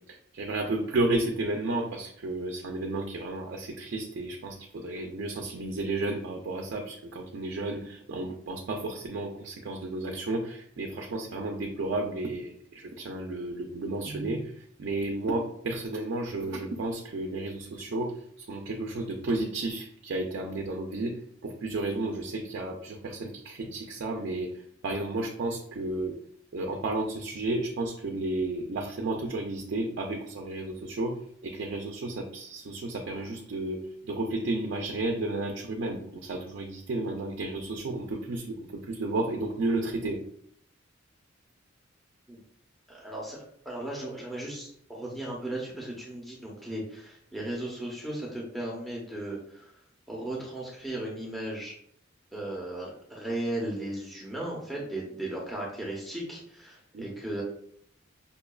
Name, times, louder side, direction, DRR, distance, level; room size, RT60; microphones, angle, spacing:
voice 1, 0.0-21.2 21.4-26.2 26.5-40.2 56.9-57.1, right 2 dB, 60° right, 3 dB, 0.4 m, -32 dB
voice 2, 42.9-49.7 50.1-51.7 52.3-57.4, right 1 dB, ahead, -4 dB, 0.6 m, -36 dB
5.4 x 2.2 x 2.2 m, 0.67 s
head